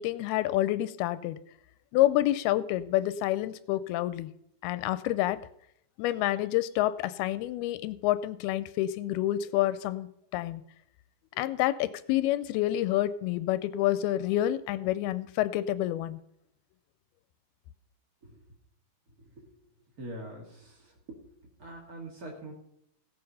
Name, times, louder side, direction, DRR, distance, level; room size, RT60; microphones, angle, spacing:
voice 1, 0.0-1.4 1.9-4.3 4.6-5.4 6.0-10.6 11.4-16.2, left 14 dB, 80° left, 14 dB, 2.4 m, -28 dB
voice 2, 20.0-21.2 21.6-22.5, right 1 dB, 40° right, -2 dB, 1.3 m, -43 dB
16.5 x 7.8 x 5.5 m, 0.73 s
omnidirectional pair, 4.7 m